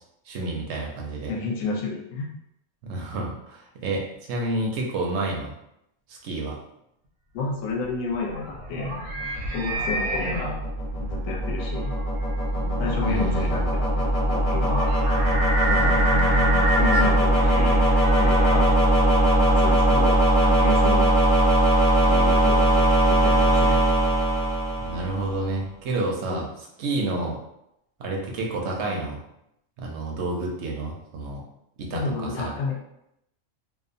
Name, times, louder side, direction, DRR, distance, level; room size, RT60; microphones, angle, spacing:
voice 1, 0.3-1.3 2.8-5.5 6.1-6.6 13.1-13.6 24.8-26.5 26.8-27.4 28.0-29.2 29.8-31.4 31.8-32.0 32.4-32.5, right 2 dB, 65° right, -1 dB, 0.7 m, -29 dB
voice 2, 1.3-2.4 7.3-9.0 9.5-10.6 11.0-11.9 12.8-14.9 15.7-16.1 16.7-17.8 18.2-18.7 19.4-21.1 22.0-23.8 26.2-26.4 31.9-32.8, left 4 dB, 70° left, 0 dB, 0.9 m, -31 dB
sound 1, 7.7-19.2, right 1 dB, 85° right, 1.2 m, -29 dB
sound 2, 9.2-25.4, right 1 dB, 45° left, 0.8 m, -20 dB
2.6 x 2.0 x 2.5 m, 0.81 s
omnidirectional pair, 1.5 m